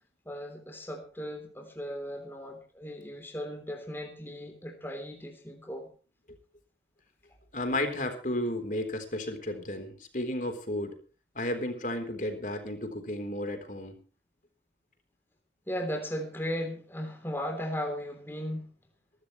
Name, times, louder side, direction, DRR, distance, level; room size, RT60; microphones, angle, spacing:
voice 1, 0.2-5.9 15.7-18.7, equal, 10° left, 4 dB, 3.4 m, -36 dB
voice 2, 7.5-11.0 11.4-14.0, left 1 dB, 45° left, 7 dB, 3.7 m, -33 dB
22.5 x 13.0 x 3.2 m, 0.37 s
head